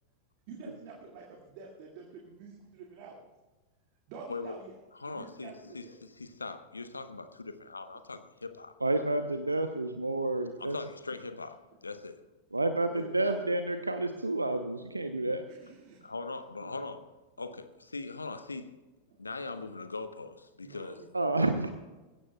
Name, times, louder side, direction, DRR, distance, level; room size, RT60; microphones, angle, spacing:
voice 1, 0.5-3.3 4.1-4.8 5.0-6.0 13.0-13.4 15.5-16.1 20.6-21.4, right 4 dB, 45° right, -1 dB, 2.1 m, -48 dB
voice 2, 4.9-8.7 10.6-12.2 16.0-18.8 19.2-21.0, left 3 dB, 80° left, 11 dB, 0.9 m, -41 dB
voice 3, 8.8-10.8 12.5-15.4 21.1-21.7, right 2 dB, 80° right, 8 dB, 0.7 m, -29 dB
20.5 x 16.0 x 2.3 m, 1.2 s
figure-of-eight pair, 90°, 0 cm